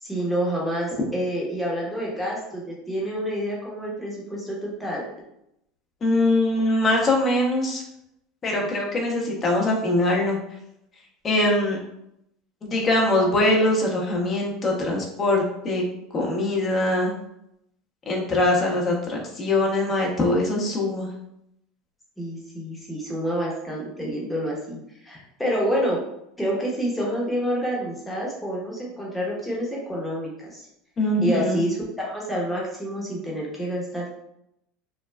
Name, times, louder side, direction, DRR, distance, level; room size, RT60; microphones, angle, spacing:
voice 1, 0.0-5.0 22.2-26.0 26.4-30.7 31.2-34.1, equal, 5° left, -4 dB, 1.0 m, -28 dB
voice 2, 6.0-7.8 8.4-10.4 11.2-11.8 12.6-15.8 16.1-17.1 18.1-21.1 31.0-31.6, left 1 dB, 30° left, -1 dB, 0.8 m, -22 dB
3.2 x 2.2 x 2.3 m, 0.80 s
hypercardioid pair, 95°, 0 cm